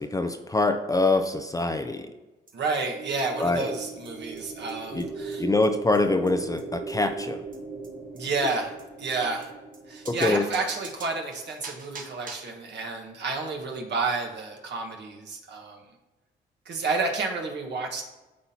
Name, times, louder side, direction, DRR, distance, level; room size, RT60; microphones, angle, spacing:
voice 1, 0.0-2.1 3.4-3.7 4.9-5.1 5.4-7.4 10.1-10.4, left 2 dB, 15° left, 7 dB, 0.5 m, -24 dB
sound 1, 2.5-2.6 2.8-2.9 3.1-3.2 3.4-3.5 3.7-3.8 4.0-4.1 4.4-4.5 4.7-4.8 5.0-5.1 5.3-5.4 5.6-5.7 5.9-6.0 6.3-6.4 6.6-6.7 6.9-7.0 7.2-7.3 7.5-7.6 7.8-7.9 8.2-8.3 8.5-8.6 8.8-8.9 9.1-9.2 9.4-9.5 9.7-9.8 10.1-12.6, right 4 dB, 40° right, 1.2 m, -44 dB
voice 2, 2.5-5.4 8.1-9.5 9.9-15.8 16.6-18.0, right 3 dB, 60° right, 1 dB, 1.4 m, -30 dB
sound 2, 2.8-11.1, right 4 dB, 75° right, 2.4 m, -39 dB
12.0 x 4.3 x 2.8 m, 1.1 s
cardioid pair, 90°, 20 cm